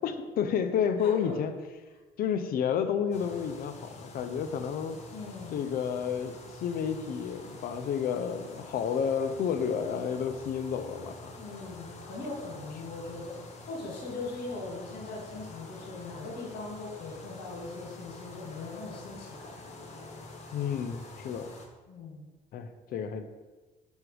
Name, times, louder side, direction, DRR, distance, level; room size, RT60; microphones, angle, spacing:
voice 1, 0.0-1.5 2.2-5.0 5.5-11.4 20.5-21.5 22.5-23.2, left 7 dB, 60° left, 9 dB, 0.6 m, -31 dB
voice 2, 1.0-1.4 5.1-5.5 11.3-20.1 21.9-22.2, left 3 dB, 90° left, -1 dB, 1.6 m, -40 dB
sound 1, 3.1-21.7, left 2 dB, 40° left, 0.9 m, -47 dB
6.1 x 3.2 x 4.8 m, 1.3 s
cardioid pair, 110°, 17 cm